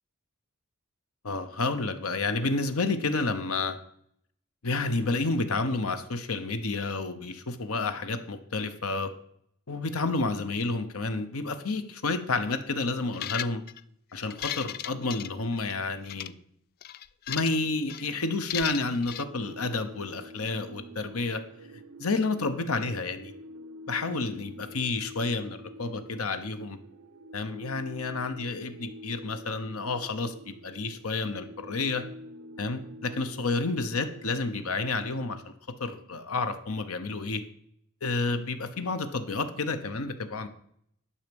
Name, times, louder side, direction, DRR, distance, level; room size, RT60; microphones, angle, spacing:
voice 1, 1.2-3.8 4.6-9.1 9.7-13.6 14.1-16.3 17.3-21.4 22.0-23.3 23.9-26.8 27.3-32.0 32.6-35.5 35.8-37.4 38.0-40.5, left 3 dB, 90° left, 10 dB, 1.0 m, -30 dB
sound 1, 13.1-13.8 14.2-15.7 16.1-16.3 16.8-17.6 17.9-18.1 18.5-19.2, left 12 dB, 45° left, 0.3 m, -36 dB
sound 2, 18.8-35.4, equal, 80° right, 0.7 m, -47 dB
11.5 x 5.7 x 5.3 m, 0.69 s
head